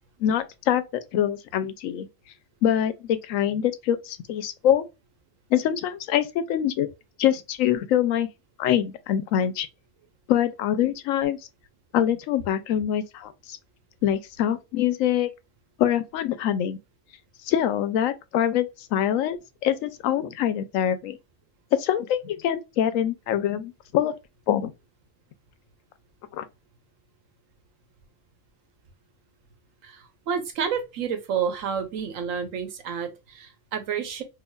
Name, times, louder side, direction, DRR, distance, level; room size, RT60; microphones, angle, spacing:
voice 1, 0.2-0.8 1.1-2.1 2.6-4.9 5.5-6.9 7.2-8.3 8.6-9.7 10.3-11.4 11.9-13.6 14.0-15.3 15.8-16.8 17.5-21.2 21.8-24.1 24.5-24.7 26.3-26.5, left 10 dB, 85° left, 1.0 m, -24 dB
voice 2, 29.8-34.2, right 7 dB, 85° right, 1.2 m, -30 dB
4.8 x 2.5 x 2.3 m
omnidirectional pair, 1.3 m